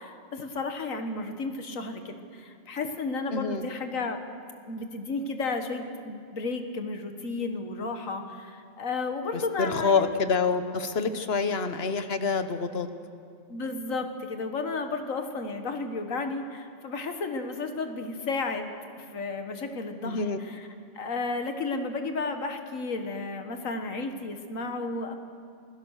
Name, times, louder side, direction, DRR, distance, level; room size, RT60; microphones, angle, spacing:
voice 1, 0.0-4.2 4.7-10.2 13.5-20.7 20.9-25.1, left 3 dB, 90° left, 6 dB, 1.9 m, -33 dB
voice 2, 3.3-3.6 9.3-12.9 20.0-20.4, left 4 dB, 50° left, 9 dB, 1.3 m, -27 dB
27.5 x 16.5 x 6.5 m, 2.2 s
omnidirectional pair, 1.3 m